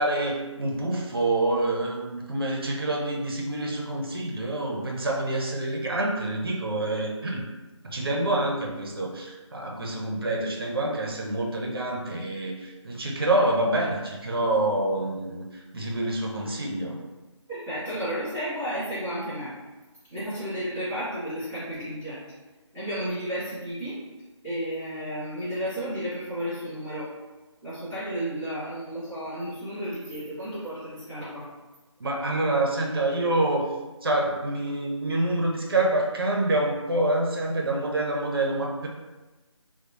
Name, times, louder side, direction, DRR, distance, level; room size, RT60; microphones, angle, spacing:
voice 1, 0.0-7.4 7.8-17.0 32.0-33.7 34.0-38.9, right 2 dB, 50° right, 0 dB, 0.5 m, -27 dB
voice 2, 17.5-19.5 20.1-22.2 22.7-24.0 24.4-27.1 27.6-31.5, equal, 10° right, -16 dB, 1.0 m, -32 dB
2.9 x 2.0 x 2.4 m, 1.2 s
figure-of-eight pair, 170°, 16 cm